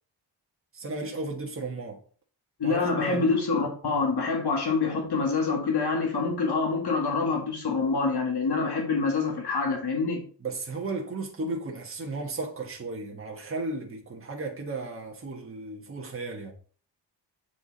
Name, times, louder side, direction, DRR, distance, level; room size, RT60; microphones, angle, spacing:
voice 1, 0.7-2.0 2.6-3.3 10.4-16.5, right 3 dB, 30° right, 1.5 m, -34 dB
voice 2, 2.6-10.2, left 4 dB, 60° left, 1.8 m, -26 dB
8.3 x 4.8 x 4.0 m
wide cardioid pair, 155°, 44 cm